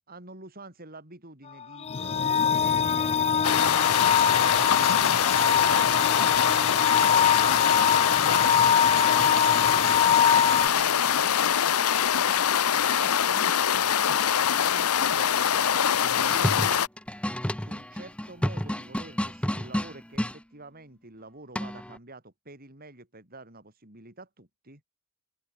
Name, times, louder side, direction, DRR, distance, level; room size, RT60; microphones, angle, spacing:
voice 1, 0.1-3.8 4.2-5.7 6.1-9.9 10.5-11.8 12.7-14.0 14.6-16.8 17.6-24.8, right 2 dB, 45° right, 6.7 m, -48 dB
sound 1, 1.6-10.7, left 7 dB, 30° left, 0.3 m, -23 dB
sound 2, 3.4-16.9, left 8 dB, 90° left, 0.8 m, -24 dB
sound 3, 16.0-20.4 21.5-22.0, equal, 5° left, 1.0 m, -30 dB
open air
head